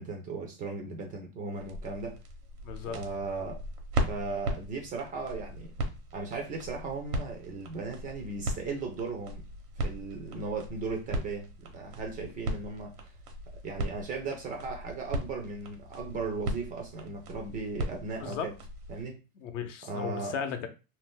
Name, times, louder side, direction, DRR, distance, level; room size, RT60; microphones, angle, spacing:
voice 1, 0.0-2.2 2.8-3.6 4.1-5.7 6.1-9.4 9.8-12.9 13.6-18.5 18.9-19.2 19.9-20.3, right 3 dB, 20° right, 2 dB, 0.4 m, -37 dB
sound 1, 1.5-19.1, right 1 dB, 90° right, 1.0 m, -38 dB
voice 2, 2.6-3.0 18.2-18.5 19.4-20.7, left 7 dB, 55° left, 8 dB, 0.8 m, -35 dB
2.7 x 2.1 x 3.5 m, 0.30 s
hypercardioid pair, 120°, 43 cm